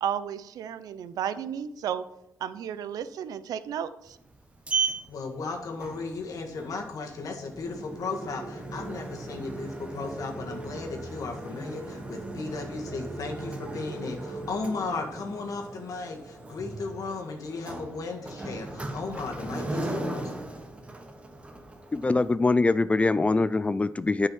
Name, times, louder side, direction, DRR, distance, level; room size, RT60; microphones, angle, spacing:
voice 1, 0.0-2.0 2.4-4.2, right 9 dB, 90° right, 14 dB, 0.6 m, -33 dB
Sliding door, 4.1-22.3, right 3 dB, 20° right, 1.2 m, -37 dB
voice 2, 5.1-20.3, left 4 dB, 70° left, 2 dB, 1.7 m, -35 dB
voice 3, 21.9-24.3, left 3 dB, 20° left, 14 dB, 0.3 m, -23 dB
9.0 x 5.6 x 5.6 m, 0.85 s
cardioid pair, 95°, 6 cm